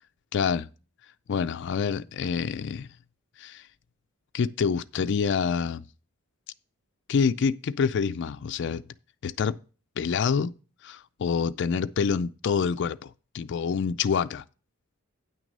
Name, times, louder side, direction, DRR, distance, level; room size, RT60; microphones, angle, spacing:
voice 1, 0.3-0.7 1.3-2.9 3.4-3.7 4.3-5.8 7.1-8.8 9.2-9.6 10.0-10.5 10.8-14.4, left 6 dB, 55° left, 0.4 m, -27 dB
9.2 x 6.2 x 5.3 m
head